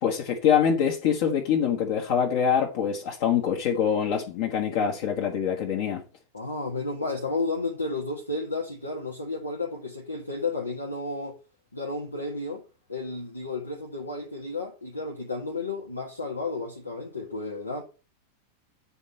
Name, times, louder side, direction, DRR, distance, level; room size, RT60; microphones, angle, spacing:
voice 1, 0.0-6.0, left 8 dB, 50° left, 1.4 m, -24 dB
voice 2, 6.3-11.4 11.7-12.6 12.9-17.8, left 3 dB, 80° left, 1.6 m, -32 dB
9.9 x 4.3 x 5.5 m
figure-of-eight pair, 90°, 0 cm